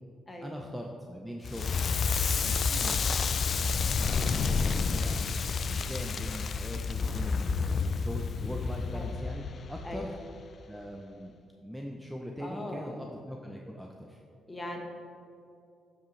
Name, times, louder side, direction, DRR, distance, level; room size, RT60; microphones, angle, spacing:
voice 1, 0.4-1.8 2.4-3.0 3.5-10.2 10.7-11.3 11.6-14.2, equal, 5° right, 1 dB, 0.6 m, -41 dB
Crackle, 1.4-10.4, left 5 dB, 50° left, 0.3 m, -30 dB
voice 2, 12.4-13.0 14.5-14.8, left 1 dB, 20° left, 1 dB, 1.3 m, -39 dB
13.0 x 5.0 x 3.2 m, 2.6 s
cardioid pair, 90°, 0 cm